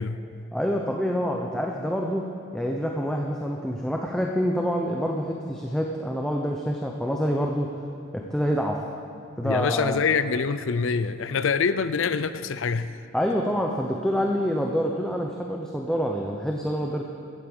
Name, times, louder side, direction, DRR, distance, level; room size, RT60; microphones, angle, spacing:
voice 1, 0.0-0.4 9.4-13.0, left 5 dB, 85° left, 14 dB, 0.5 m, -25 dB
voice 2, 0.5-7.8 8.1-8.9 9.4-10.0 13.1-17.1, equal, 5° left, 0 dB, 0.7 m, -27 dB
15.5 x 8.2 x 7.1 m, 2.5 s
head